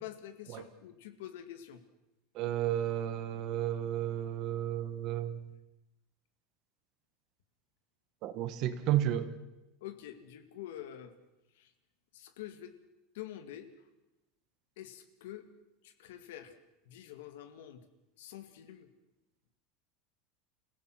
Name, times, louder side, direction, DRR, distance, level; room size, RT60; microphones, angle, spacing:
voice 1, 0.0-1.8 9.8-11.1 11.6-11.7 12.1-12.7 13.1-13.7 14.8-15.5 15.8-16.5 16.9-17.8 18.2-18.9, left 12 dB, 85° left, 9 dB, 2.2 m, -46 dB
voice 2, 2.3-5.4 8.2-9.3, right 11 dB, 45° right, 11 dB, 1.6 m, -32 dB
28.0 x 16.5 x 6.1 m, 0.95 s
supercardioid pair, 165°, 0 cm